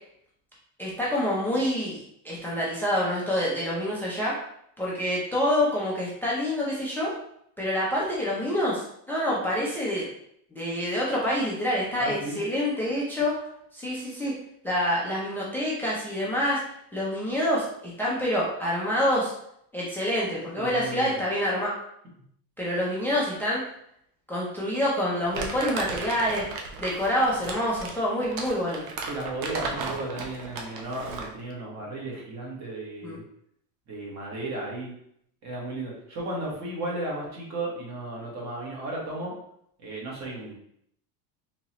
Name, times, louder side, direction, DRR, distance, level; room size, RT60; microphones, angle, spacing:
voice 1, 0.8-4.4 4.8-7.1 7.6-10.1 10.5-13.4 13.7-14.3 14.6-16.6 16.9-19.3 19.7-21.7 22.6-23.6 24.3-26.5 26.8-28.8 33.0-33.2, equal, 5° left, -6 dB, 0.4 m, -27 dB
voice 2, 12.0-12.4 20.6-21.2 29.1-33.2 33.9-34.9 35.4-39.3 39.8-40.5, right 2 dB, 35° right, -3 dB, 1.3 m, -34 dB
Crumpling crinkling, 25.3-31.4, right 4 dB, 80° right, 0.9 m, -36 dB
3.7 x 2.9 x 3.0 m, 0.72 s
supercardioid pair, 145°, 49 cm